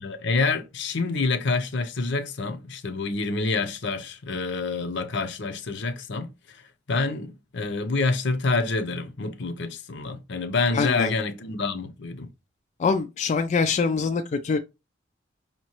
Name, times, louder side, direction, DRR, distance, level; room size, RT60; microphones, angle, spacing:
voice 1, 0.0-6.6 6.9-12.3, left 3 dB, 70° left, 0.7 m, -27 dB
voice 2, 10.7-11.1 12.8-14.6, left 5 dB, 40° left, 0.3 m, -24 dB
5.2 x 2.9 x 2.9 m
head